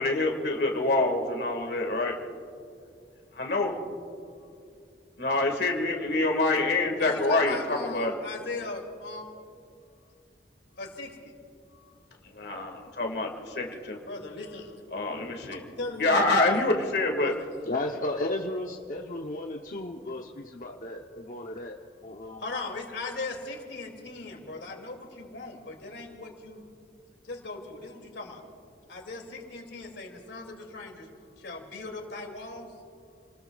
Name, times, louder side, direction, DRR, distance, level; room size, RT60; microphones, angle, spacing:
voice 1, 0.0-2.2 3.4-3.7 5.2-8.2 12.4-14.0 14.9-15.6 16.0-17.3, left 2 dB, 70° left, 2 dB, 2.0 m, -26 dB
voice 2, 7.0-9.2 10.8-11.3 14.0-14.7 15.8-16.6 17.2-17.5 22.4-26.6 27.2-28.4 28.9-31.1 31.4-32.7, left 3 dB, 90° left, 2 dB, 2.7 m, -38 dB
voice 3, 17.6-21.7 22.0-22.4, left 2 dB, 50° left, 0 dB, 0.9 m, -34 dB
29.5 x 20.0 x 2.4 m, 2.4 s
head